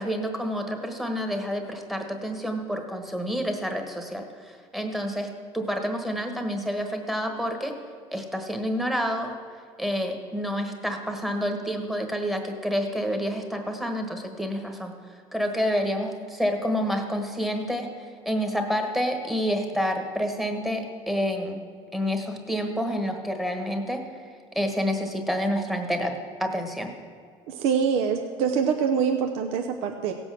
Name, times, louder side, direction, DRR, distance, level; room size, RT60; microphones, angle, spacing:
voice 1, 0.0-7.7 8.1-9.3 9.8-14.9 15.3-21.6 21.9-24.0 24.5-26.9, equal, ahead, 4 dB, 1.3 m, -28 dB
voice 2, 27.5-30.1, right 6 dB, 75° right, 5 dB, 0.9 m, -25 dB
17.0 x 8.0 x 6.2 m, 2.1 s
cardioid pair, 155°, 10 cm